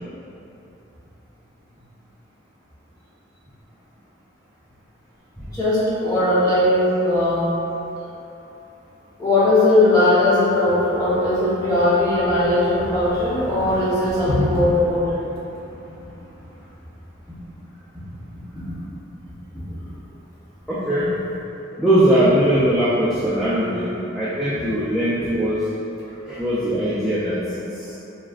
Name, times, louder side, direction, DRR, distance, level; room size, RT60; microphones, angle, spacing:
voice 1, 5.5-7.5 9.2-15.2, left 1 dB, 20° left, -10 dB, 1.0 m, -18 dB
voice 2, 20.7-21.1 21.8-25.7 26.3-27.9, right 1 dB, ahead, -12 dB, 0.4 m, -20 dB
5.0 x 3.2 x 2.4 m, 2.9 s
head